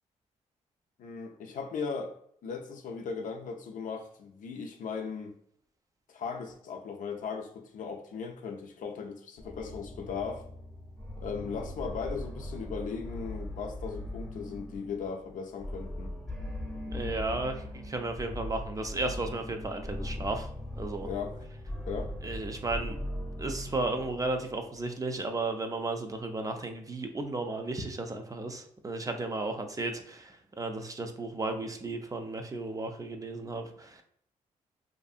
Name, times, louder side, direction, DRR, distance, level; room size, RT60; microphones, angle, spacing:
voice 1, 1.0-2.2 2.4-5.3 6.1-10.5 11.2-16.2 21.0-21.4 21.9-22.1, left 5 dB, 70° left, 0.5 m, -37 dB
sound 1, 9.4-25.1, left 1 dB, 5° left, 0.8 m, -40 dB
voice 2, 16.8-20.5 20.8-21.1 22.2-23.0 23.4-34.0, right 2 dB, 25° right, 0.4 m, -34 dB
2.6 x 2.5 x 2.4 m
cardioid pair, 65°, 14 cm